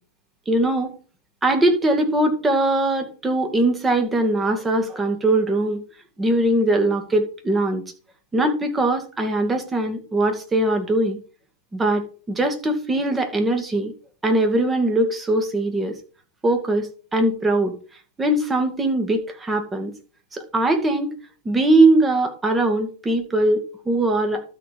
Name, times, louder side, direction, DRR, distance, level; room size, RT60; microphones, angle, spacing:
voice 1, 0.5-0.9 1.4-5.8 6.2-7.8 8.3-11.2 11.7-13.9 14.2-15.9 16.4-17.8 18.2-19.9 20.3-21.1 21.5-24.4, right 2 dB, 15° right, 5 dB, 2.2 m, -21 dB
12.5 x 4.6 x 5.2 m, 0.38 s
figure-of-eight pair, 100°, 0 cm